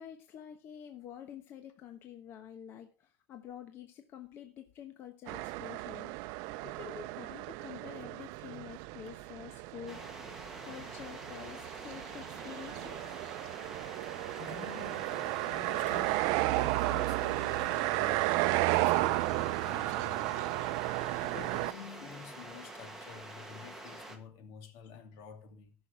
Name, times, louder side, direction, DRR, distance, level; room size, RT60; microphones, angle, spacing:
voice 1, 0.0-6.1 6.6-10.0 10.6-13.1, left 9 dB, 45° left, 1.1 m, -48 dB
sound 1, 5.3-21.7, right 20 dB, 75° right, 0.5 m, -33 dB
sound 2, 9.9-24.2, right 2 dB, 5° right, 1.5 m, -47 dB
voice 2, 14.0-20.7 21.2-25.7, left 6 dB, 80° left, 2.5 m, -49 dB
14.5 x 6.3 x 4.9 m
cardioid pair, 165°, 6 cm